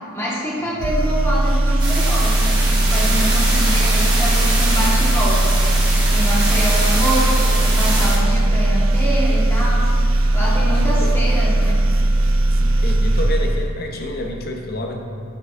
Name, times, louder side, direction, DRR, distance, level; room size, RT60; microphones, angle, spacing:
voice 1, 0.1-5.8 6.1-9.9 10.3-11.8, equal, 10° left, -7 dB, 1.4 m, -25 dB
sound 1, 0.8-14.2, right 1 dB, 70° right, 0.4 m, -18 dB
sound 2, 1.8-8.2, right 2 dB, 20° right, 1.4 m, -24 dB
voice 2, 10.4-11.1 12.6-15.0, left 1 dB, 50° left, 2 dB, 0.7 m, -29 dB
8.6 x 5.9 x 2.5 m, 2.5 s
head